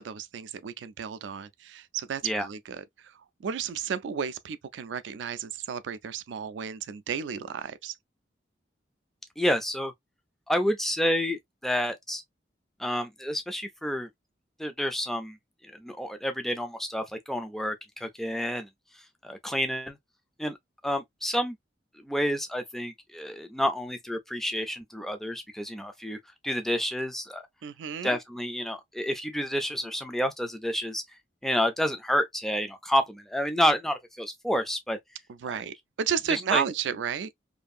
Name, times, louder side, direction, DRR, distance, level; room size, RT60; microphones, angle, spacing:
voice 1, 0.0-8.0 27.6-28.2 35.4-37.3, right 7 dB, 85° right, 0.3 m, -33 dB
voice 2, 9.4-9.9 10.5-12.2 12.8-14.1 14.6-15.4 15.6-18.7 18.9-20.0 20.4-20.6 20.8-21.6 22.0-27.5 28.0-31.0 31.4-35.0 36.3-36.6, equal, ahead, 0.3 m, -29 dB
2.6 x 2.5 x 2.3 m
head